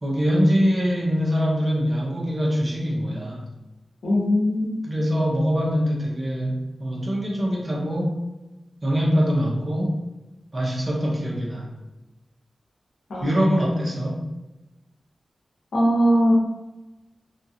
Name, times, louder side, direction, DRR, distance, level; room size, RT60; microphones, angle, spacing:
voice 1, 0.0-3.4 4.8-8.2 8.8-10.0 10.5-11.7 13.2-14.2, equal, 40° right, -2 dB, 0.8 m, -23 dB
voice 2, 4.0-4.7 13.1-13.4 15.7-16.3, equal, 90° left, -5 dB, 0.9 m, -20 dB
2.7 x 2.3 x 2.8 m, 1.0 s
cardioid pair, 55°, 0 cm